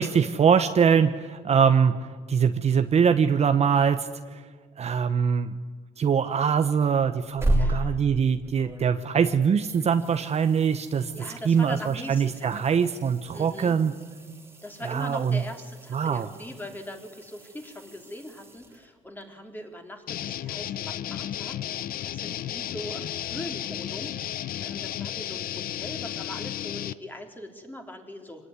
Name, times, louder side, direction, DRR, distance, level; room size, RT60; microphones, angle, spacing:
voice 1, 0.0-4.4 4.8-5.5 6.0-11.1 11.4-13.9 14.8-15.4 15.9-16.3, right 7 dB, 40° right, 8 dB, 1.1 m, -23 dB
sound 1, 7.1-9.3 9.6-19.2 22.0-22.1, right 1 dB, 15° right, 2.7 m, -35 dB
voice 2, 7.5-8.0 11.1-12.6 13.3-13.8 14.6-24.3 24.6-28.5, left 1 dB, 10° left, 3 dB, 3.7 m, -41 dB
sound 2, 20.1-26.9, left 11 dB, 60° left, 0.8 m, -33 dB
26.0 x 18.5 x 9.8 m, 1.5 s
cardioid pair, 110°, 17 cm